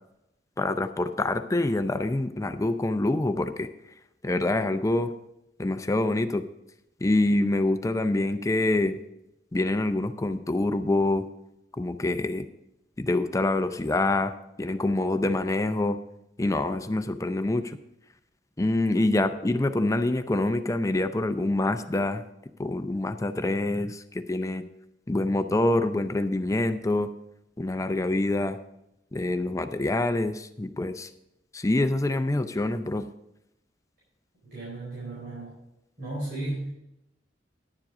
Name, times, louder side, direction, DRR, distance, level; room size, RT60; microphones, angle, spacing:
voice 1, 0.6-3.7 4.2-5.1 5.6-6.4 7.0-9.0 9.5-11.3 11.8-12.5 13.0-14.3 14.6-16.0 16.4-17.8 18.6-22.2 22.6-24.7 25.1-27.1 27.6-28.6 29.1-31.1 31.5-33.1, left 2 dB, 20° left, 9 dB, 0.5 m, -26 dB
voice 2, 34.4-35.5 36.0-36.7, right 2 dB, 60° right, -7 dB, 4.6 m, -35 dB
10.5 x 7.4 x 4.9 m, 0.85 s
head